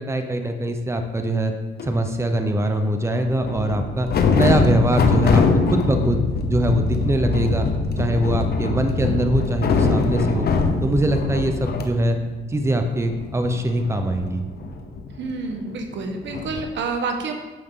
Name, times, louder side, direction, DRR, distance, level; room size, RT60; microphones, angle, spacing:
voice 1, 0.0-1.5 1.8-4.1 4.3-5.4 5.7-6.2 6.5-7.7 8.0-10.5 10.8-12.2 12.5-14.4, right 1 dB, 15° right, 6 dB, 0.9 m, -22 dB
sound 1, 1.8-1.9 3.3-11.8 12.2-12.3 12.5-15.7 16.3-16.6, left 4 dB, 55° left, 1.0 m, -22 dB
voice 2, 15.2-17.3, right 4 dB, 65° right, 4 dB, 1.3 m, -28 dB
9.7 x 6.3 x 3.9 m, 1.2 s
cardioid pair, 90°, 20 cm